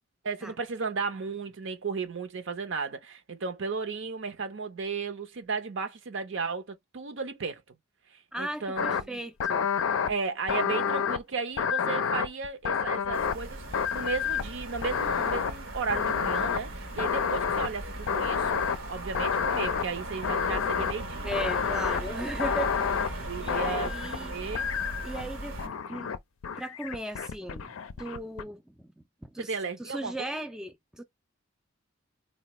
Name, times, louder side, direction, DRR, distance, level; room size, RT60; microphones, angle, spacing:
voice 1, 0.2-7.6 8.1-9.2 10.1-21.3 23.2-23.9 24.2-24.7 29.4-30.4, right 4 dB, 65° right, 0.7 m, -34 dB
voice 2, 8.3-9.7 21.2-22.7 23.0-24.5 25.0-26.1 26.6-28.9 29.2-29.5 29.8-31.0, right 1 dB, 5° right, 0.3 m, -37 dB
sound 1, 8.8-9.0 9.4-10.1 10.5-11.2 11.6-13.4 13.7-14.6 14.8-15.5 15.9-16.6 17.0-17.7 18.1-18.8 19.1-19.8 20.2-20.9 21.3-22.0 22.4-23.1 23.5-24.2 24.5-25.2 25.6-26.2 26.4-28.4, left 7 dB, 75° left, 0.4 m, -29 dB
sound 2, 13.1-25.7, right 1 dB, 80° right, 1.1 m, -38 dB
4.1 x 2.1 x 2.9 m
head